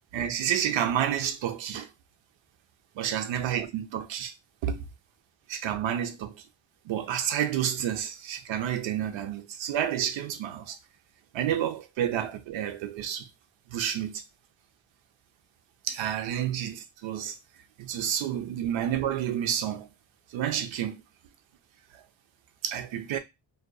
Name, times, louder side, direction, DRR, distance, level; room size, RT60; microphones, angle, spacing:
voice 1, 0.1-1.9 3.0-4.3 4.6-4.8 5.5-6.3 6.9-10.8 11.3-13.3 13.7-14.2 15.8-17.4 17.8-19.9 20.3-21.0 21.9-22.0 22.6-23.2, right 10 dB, 80° right, 0.6 m, -30 dB
2.6 x 2.3 x 2.2 m
cardioid pair, 125°, 45 cm